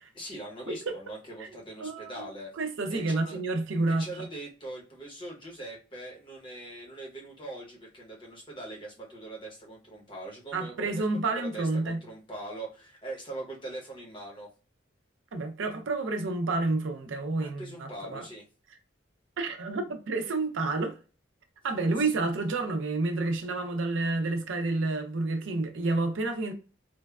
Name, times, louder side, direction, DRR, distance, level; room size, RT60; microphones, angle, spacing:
voice 1, 0.1-2.5 2.9-3.4 3.9-14.5 17.4-18.5 22.0-22.1, right 2 dB, 25° left, 0.9 m, -42 dB
voice 2, 1.8-2.2 2.6-4.3 10.5-12.0 15.3-18.3 19.4-21.0 21.6-26.5, right 2 dB, 80° right, 0.5 m, -29 dB
3.2 x 2.1 x 2.3 m
head